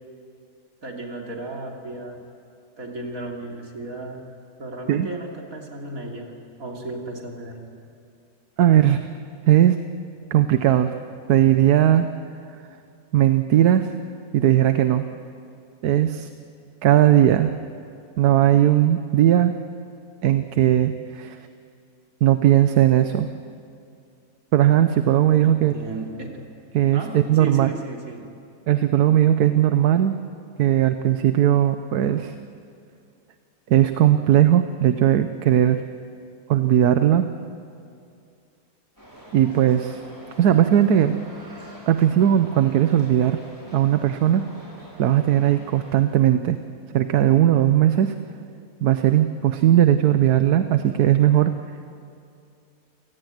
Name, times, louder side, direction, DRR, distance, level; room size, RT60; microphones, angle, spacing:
voice 1, 0.8-2.2 2.8-4.2 4.6-6.3 6.6-7.7 25.4-26.5 26.9-28.3, right 2 dB, 65° right, 1 dB, 3.4 m, -34 dB
voice 2, 8.6-9.1 9.5-9.8 10.3-10.9 11.3-12.1 13.1-13.9 14.3-15.0 15.8-16.3 16.8-17.5 18.2-19.5 20.2-21.4 22.2-23.3 24.5-25.7 26.7-27.7 28.7-30.1 30.6-32.3 33.7-35.8 36.5-37.3 39.3-40.0 40.4-41.2 41.5-41.6 41.9-43.4 43.7-44.4 45.0-46.6 46.9-48.1 48.8-51.5, right 11 dB, 85° right, 9 dB, 1.3 m, -18 dB
sound 1, 39.0-45.9, equal, 10° left, 6.2 m, -45 dB
29.0 x 18.0 x 9.2 m, 2.5 s
omnidirectional pair, 1.6 m